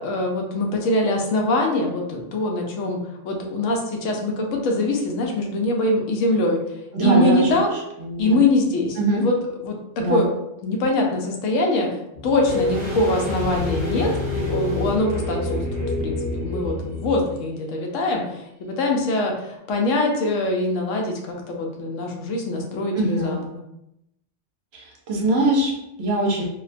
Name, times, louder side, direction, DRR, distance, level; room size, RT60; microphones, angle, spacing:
voice 1, 0.0-6.6 7.0-7.7 8.2-9.3 9.6-10.3 10.6-11.9 12.2-23.6, left 2 dB, 90° left, 1 dB, 0.9 m, -23 dB
voice 2, 6.9-8.4 9.0-9.3 10.0-10.2 23.0-23.4 24.7-26.5, right 1 dB, 65° right, -1 dB, 0.8 m, -22 dB
sound 1, 12.1-17.2, left 3 dB, 60° left, 0.6 m, -30 dB
sound 2, 12.4-17.3 17.6-17.7, left 1 dB, 25° right, 0.8 m, -29 dB
2.4 x 2.1 x 2.4 m, 0.83 s
omnidirectional pair, 1.3 m